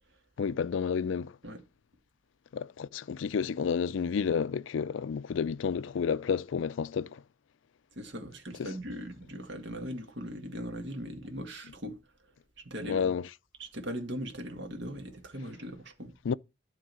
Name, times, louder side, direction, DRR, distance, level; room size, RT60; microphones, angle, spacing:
voice 1, 0.4-1.3 2.5-7.2 8.6-8.7 12.9-13.3 16.2-16.3, left 6 dB, 85° left, 0.4 m, -30 dB
voice 2, 8.0-12.0 12.6-13.1 13.6-16.1, equal, 70° right, 1.9 m, -39 dB
11.5 x 3.9 x 6.2 m
head